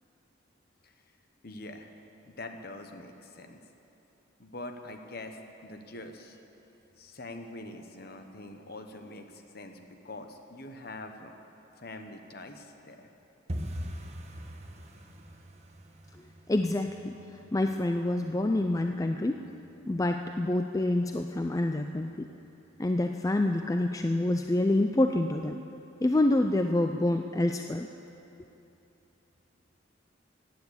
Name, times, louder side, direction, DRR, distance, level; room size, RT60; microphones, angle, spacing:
voice 1, 1.4-1.9 2.2-3.6 4.4-6.4 7.0-11.3 11.8-13.1, left 2 dB, 50° left, 6 dB, 1.1 m, -44 dB
sound 1, 13.5-24.2 24.5-25.2 25.4-25.7 26.0-26.4 26.7-26.8 27.3-27.8 28.1-28.2 28.7-28.8, equal, 35° right, 1.1 m, -45 dB
voice 2, 16.5-17.1 17.5-19.4 19.9-22.3 22.8-25.6 26.0-27.9, left 1 dB, 15° left, 6 dB, 0.3 m, -27 dB
15.5 x 9.4 x 8.1 m, 2.9 s
head